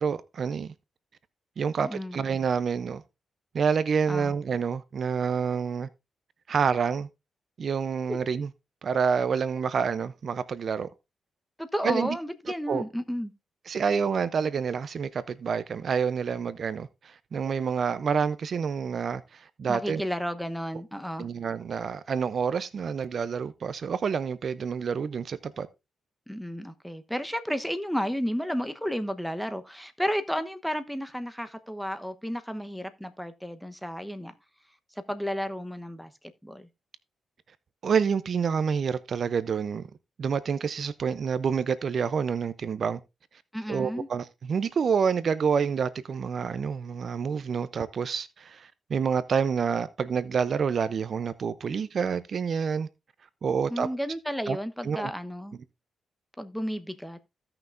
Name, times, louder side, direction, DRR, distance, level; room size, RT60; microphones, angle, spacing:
voice 1, 0.0-0.7 1.6-3.0 3.5-5.9 6.5-7.1 7.6-8.5 8.8-10.9 11.8-12.2 12.7-12.8 13.7-20.0 21.2-25.7 37.8-39.9 40.2-43.0 43.7-52.9 53.4-53.9 54.5-54.6 54.8-55.1, right 6 dB, 55° right, 0.6 m, -28 dB
voice 2, 1.8-2.2 4.1-4.3 8.1-8.2 11.6-13.3 19.7-21.3 26.3-34.3 35.1-36.1 36.4-36.7 43.5-44.1 53.7-55.6 56.4-57.2, equal, ahead, 1.0 m, -32 dB
16.0 x 5.9 x 2.5 m
cardioid pair, 75°, 0 cm